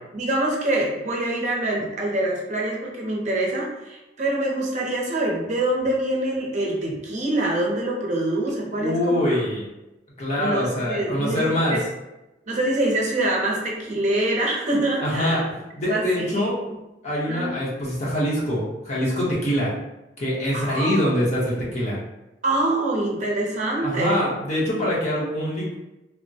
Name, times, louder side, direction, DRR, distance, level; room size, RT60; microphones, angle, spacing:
voice 1, 0.1-9.4 10.4-11.8 12.5-15.4 15.9-16.5 17.3-17.5 20.5-21.1 22.4-24.2, right 1 dB, 40° right, -2 dB, 0.6 m, -25 dB
voice 2, 8.8-9.7 10.2-11.8 15.0-16.5 17.0-19.7 20.2-22.0 23.8-25.7, equal, 40° left, -6 dB, 0.9 m, -24 dB
3.4 x 2.1 x 2.7 m, 0.98 s
head